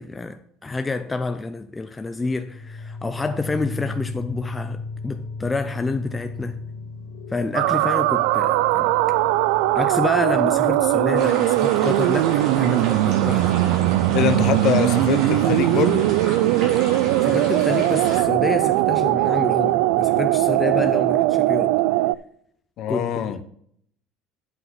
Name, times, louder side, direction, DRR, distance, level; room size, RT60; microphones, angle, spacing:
voice 1, 0.0-6.6 7.3-8.9 9.7-13.5 17.2-21.8 22.9-23.4, left 3 dB, 10° left, 0.4 m, -28 dB
sound 1, 2.2-16.7, left 3 dB, 65° left, 2.5 m, -37 dB
sound 2, 7.5-22.1, right 16 dB, 85° right, 0.3 m, -20 dB
sound 3, 11.1-18.2, right 2 dB, 55° right, 3.3 m, -32 dB
voice 2, 14.1-16.1 22.8-23.4, left 9 dB, 45° left, 0.7 m, -23 dB
8.1 x 5.7 x 5.8 m
cardioid pair, 175°, 0 cm